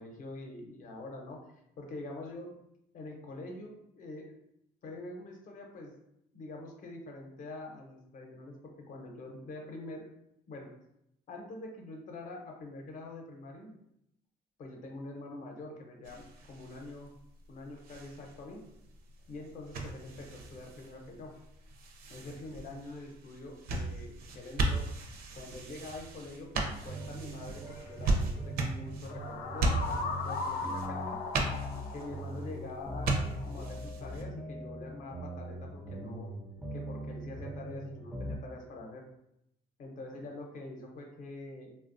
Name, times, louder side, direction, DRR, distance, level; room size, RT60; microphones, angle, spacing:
voice 1, 0.0-1.4 1.8-2.5 2.9-4.3 4.8-5.9 6.3-10.1 10.5-10.7 11.3-13.7 14.6-17.1 17.5-18.6 19.3-21.3 22.1-24.9 25.4-31.2 31.9-36.3 36.7-39.0 39.8-41.7, left 2 dB, 50° left, 1 dB, 0.7 m, -45 dB
sound 1, 16.0-34.2, right 2 dB, 60° right, 0.5 m, -37 dB
sound 2, 26.8-38.4, equal, ahead, 0.3 m, -41 dB
sound 3, 27.7-27.8 29.1-33.6, left 4 dB, 80° left, 0.4 m, -38 dB
2.9 x 2.2 x 2.5 m, 0.79 s
cardioid pair, 110°, 17 cm